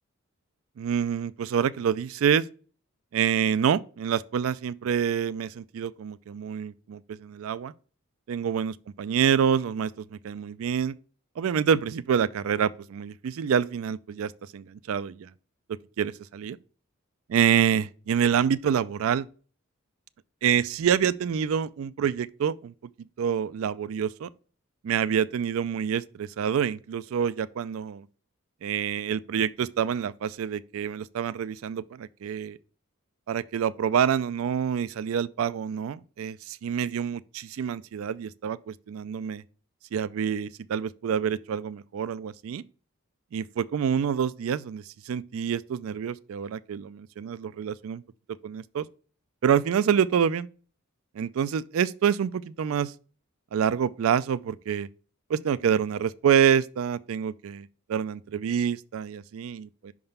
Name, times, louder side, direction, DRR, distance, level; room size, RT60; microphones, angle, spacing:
voice 1, 0.8-2.5 3.1-7.7 8.3-10.9 11.4-15.3 15.7-16.6 17.3-19.3 20.4-22.7 23.2-24.3 24.8-28.1 28.6-32.6 33.3-39.4 39.9-42.6 43.3-48.0 48.4-48.9 49.4-50.5 51.2-52.9 53.5-54.9 55.3-59.9, right 8 dB, 70° right, 0.3 m, -27 dB
5.7 x 3.6 x 5.4 m
head